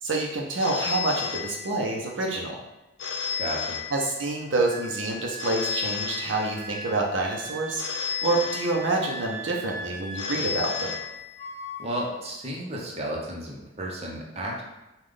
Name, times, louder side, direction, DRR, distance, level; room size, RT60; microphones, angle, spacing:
voice 1, 0.0-2.6 3.9-7.8 8.2-10.9, right 2 dB, 75° right, 0 dB, 0.6 m, -27 dB
Telephone, 0.6-2.1 3.0-4.5 5.4-6.9 7.8-9.3 10.2-11.7, left 7 dB, 85° left, 0.6 m, -33 dB
voice 2, 3.4-3.8 11.8-14.6, right 1 dB, 35° right, -3 dB, 0.8 m, -33 dB
Wind instrument woodwind instrument, 4.7-11.1 11.4-12.0, right 1 dB, 15° left, 0.7 m, -40 dB
5.2 x 2.3 x 3.7 m, 1.0 s
head